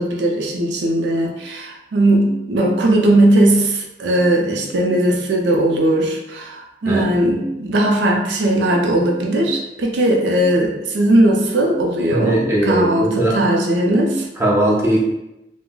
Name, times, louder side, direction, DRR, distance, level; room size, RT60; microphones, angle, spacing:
voice 1, 0.0-14.3, right 1 dB, 85° right, 1 dB, 0.5 m, -18 dB
voice 2, 12.1-13.4 14.4-15.0, right 1 dB, 15° right, -4 dB, 0.5 m, -18 dB
3.7 x 2.0 x 2.2 m, 0.91 s
head